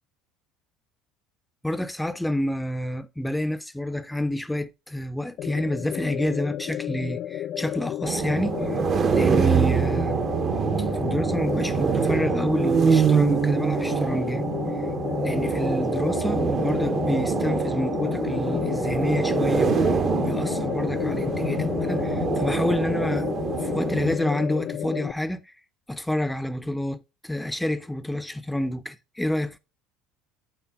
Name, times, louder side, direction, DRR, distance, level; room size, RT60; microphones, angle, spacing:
voice 1, 1.6-8.8 9.1-10.2 10.8-14.4 15.2-23.3 23.6-25.5 25.9-29.6, left 1 dB, 5° left, 0.7 m, -28 dB
sound 1, 5.4-25.1, left 11 dB, 50° left, 0.3 m, -31 dB
sound 2, 8.0-24.2, right 7 dB, 35° right, 0.9 m, -25 dB
10.0 x 4.4 x 3.5 m
supercardioid pair, 120°, 0 cm